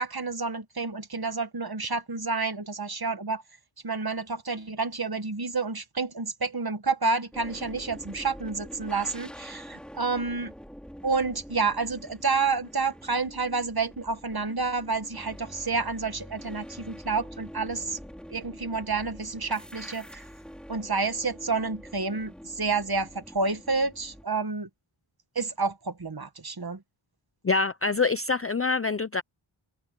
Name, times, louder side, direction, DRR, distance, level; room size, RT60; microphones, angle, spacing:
voice 1, 0.0-3.4 3.8-10.5 11.0-18.0 18.3-20.3 20.7-24.7 25.3-26.8, right 4 dB, 50° right, 1.7 m, -29 dB
sound 1, 7.3-24.2, equal, ahead, 4.0 m, -45 dB
voice 2, 27.4-29.2, left 4 dB, 30° left, 0.6 m, -25 dB
wide cardioid pair, 65°, 49 cm